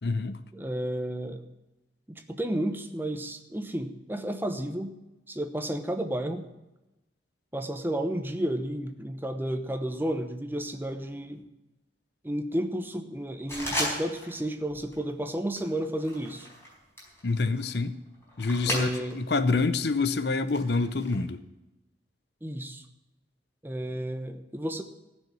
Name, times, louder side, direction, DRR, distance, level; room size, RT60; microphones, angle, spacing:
voice 1, 0.0-0.4 17.2-18.0 18.4-21.4, left 3 dB, 65° left, 0.8 m, -27 dB
voice 2, 0.5-1.4 2.1-4.9 5.3-6.4 7.5-11.5 12.2-16.5 18.7-19.2 22.4-22.8 23.6-24.8, right 1 dB, 10° right, 0.9 m, -32 dB
sound 1, 13.5-14.4 14.7-15.1 15.6-19.3 19.6-21.1, equal, 15° left, 4.6 m, -36 dB
15.0 x 6.5 x 9.0 m
head